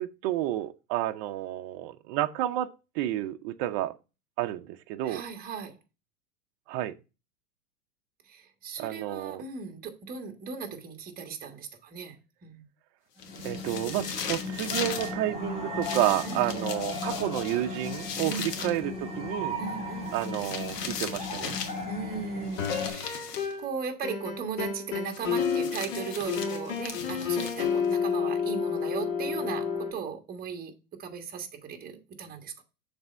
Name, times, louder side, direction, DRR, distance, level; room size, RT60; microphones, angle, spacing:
voice 1, 0.0-2.7 2.9-3.9 4.4-5.2 6.7-6.9 8.8-9.5 13.4-19.6 20.1-21.6, right 13 dB, 40° right, 0.6 m, -30 dB
voice 2, 5.0-5.7 8.3-12.1 12.4-12.6 16.2-16.8 18.2-18.6 19.6-20.2 21.9-23.2 23.6-30.7 31.0-32.6, right 6 dB, 20° right, 1.4 m, -37 dB
sound 1, 13.2-15.1 15.8-18.8 20.1-21.8 22.5-23.5 25.1-27.9, left 6 dB, 90° left, 1.3 m, -38 dB
sound 2, 13.2-22.9, left 2 dB, 15° left, 2.6 m, -36 dB
sound 3, 22.6-23.7 24.0-29.9, left 6 dB, 60° left, 2.0 m, -30 dB
7.1 x 3.4 x 5.3 m
hypercardioid pair, 125°, 46 cm